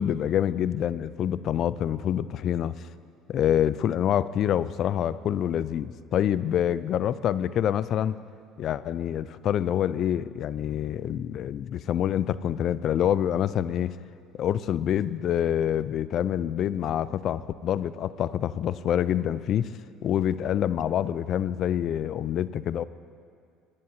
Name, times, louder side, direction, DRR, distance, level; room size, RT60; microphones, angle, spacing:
voice 1, 0.0-2.8 3.3-8.2 8.6-14.0 14.4-19.7 20.0-22.8, left 10 dB, 55° left, 16 dB, 0.4 m, -26 dB
21.0 x 10.0 x 2.8 m, 2.3 s
supercardioid pair, 105°, 0 cm